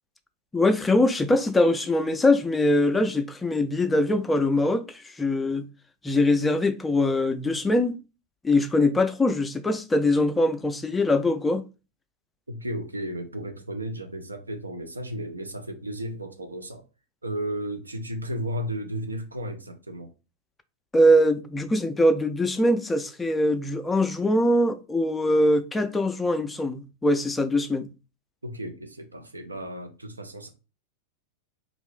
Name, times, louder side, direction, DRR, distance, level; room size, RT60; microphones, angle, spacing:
voice 1, 0.5-5.7 6.0-8.0 8.4-11.6 20.9-27.9, left 1 dB, 10° left, 0.4 m, -22 dB
voice 2, 12.5-16.8 17.2-20.1 28.4-30.5, equal, 80° right, 0.5 m, -34 dB
2.5 x 2.4 x 3.5 m
figure-of-eight pair, 90°, 0 cm